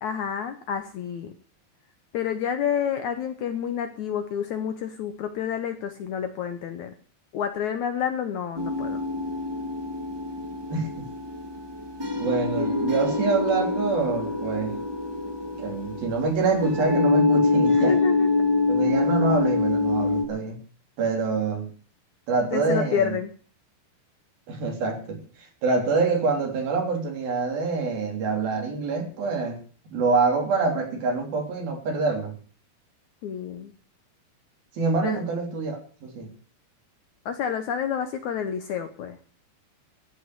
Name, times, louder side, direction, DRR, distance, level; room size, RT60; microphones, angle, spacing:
voice 1, 0.0-1.3 2.1-6.9 7.3-9.0 17.7-18.3 22.5-23.3 33.2-33.7 35.0-35.2 37.3-39.2, left 8 dB, 70° left, 8 dB, 1.9 m, -29 dB
sound 1, 8.6-20.2, left 3 dB, 20° right, 0.6 m, -25 dB
voice 2, 10.7-11.1 12.2-14.8 15.6-18.0 18.7-20.6 21.0-21.7 22.3-23.2 24.5-25.2 25.6-29.6 29.9-32.4 34.8-36.3, right 4 dB, 70° right, 2 dB, 5.3 m, -26 dB
14.5 x 9.1 x 8.1 m, 0.42 s
omnidirectional pair, 4.4 m